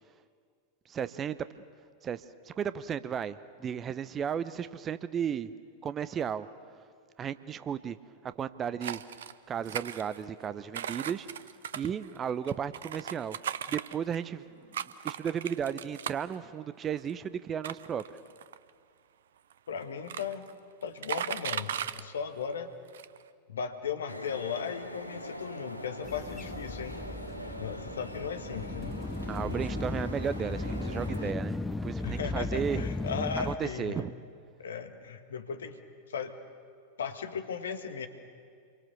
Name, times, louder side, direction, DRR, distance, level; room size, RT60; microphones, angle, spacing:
voice 1, 0.9-1.4 2.0-5.5 5.8-6.5 7.2-8.0 8.2-9.0 9.5-11.3 11.8-13.4 13.7-18.0 29.3-32.9 33.5-34.1, right 8 dB, 25° right, 14 dB, 0.8 m, -34 dB
sound 1, 8.8-9.3 9.7-10.4 10.7-14.2 14.7-16.4 17.0-17.1 17.6-18.7 19.5-19.6 19.8-20.5 20.8-22.0 22.5-22.6 22.9-23.2, right 9 dB, 60° right, 0.7 m, -37 dB
voice 2, 19.7-20.5 20.8-22.7 23.5-27.0 27.6-29.0 32.0-34.0 34.6-35.8 36.1-36.4 37.0-38.1, left 6 dB, 65° left, 8 dB, 1.8 m, -36 dB
sound 2, 24.1-31.3, equal, 90° right, 1.3 m, -42 dB
sound 3, 26.0-33.6, left 2 dB, 10° left, 0.7 m, -36 dB
29.0 x 23.5 x 6.9 m, 2.2 s
figure-of-eight pair, 90°, 0 cm